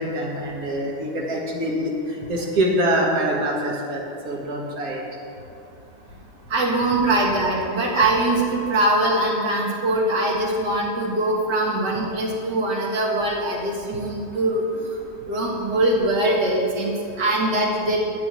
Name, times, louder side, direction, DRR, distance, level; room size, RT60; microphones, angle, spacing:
voice 1, 0.0-5.0, right 1 dB, 60° right, -2 dB, 2.0 m, -25 dB
voice 2, 6.5-14.6 15.3-18.0, right 1 dB, 80° right, -3 dB, 2.2 m, -22 dB
8.8 x 6.3 x 7.4 m, 2.5 s
omnidirectional pair, 1.8 m